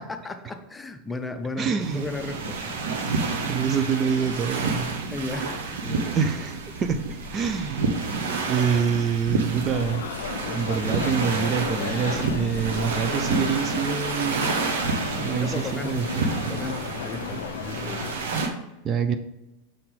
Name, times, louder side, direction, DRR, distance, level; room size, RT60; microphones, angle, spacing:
voice 1, 0.0-2.8 5.1-6.2 15.4-16.0 16.5-18.1, left 2 dB, 10° left, 7 dB, 0.6 m, -35 dB
voice 2, 1.6-2.1 3.4-4.9 6.1-7.9 8.4-14.6 15.1-16.1 18.8-19.2, right 7 dB, 30° right, 8 dB, 0.5 m, -26 dB
sound 1, 1.8-18.5, right 3 dB, 60° right, 1.1 m, -29 dB
sound 2, 9.7-18.2, left 9 dB, 60° left, 0.4 m, -35 dB
6.4 x 5.7 x 3.7 m, 0.95 s
figure-of-eight pair, 85°, 0 cm